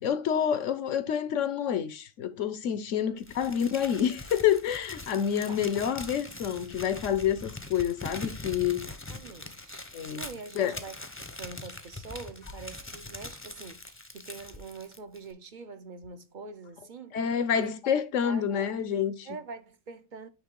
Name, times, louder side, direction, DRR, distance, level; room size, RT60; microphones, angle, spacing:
voice 1, 0.0-8.9 9.9-10.3 10.5-10.8 17.1-19.3, left 8 dB, 75° left, 1.1 m, -28 dB
Crumpling crinkling, 3.2-15.3, left 2 dB, 15° left, 0.6 m, -42 dB
voice 2, 8.9-9.9 10.1-11.0 11.3-17.2 17.5-17.7 18.2-18.5 19.3-20.3, right 4 dB, 45° right, 0.8 m, -44 dB
9.4 x 3.3 x 3.7 m
omnidirectional pair, 1.3 m